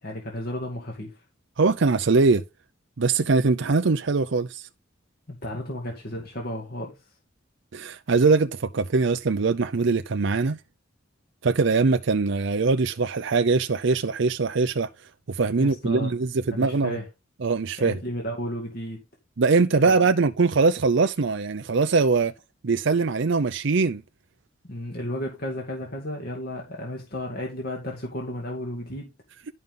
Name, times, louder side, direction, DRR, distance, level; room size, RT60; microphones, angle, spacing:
voice 1, 0.0-1.2 5.3-7.1 15.6-16.1 16.5-17.1 17.8-19.0 19.8-20.0 24.6-29.1, equal, 50° left, 2.3 m, -33 dB
voice 2, 1.6-2.4 3.0-4.7 7.7-10.6 11.4-14.9 15.3-17.0 17.4-18.0 19.4-22.3 22.6-24.0, right 4 dB, 65° right, 0.6 m, -22 dB
12.5 x 5.5 x 3.8 m
head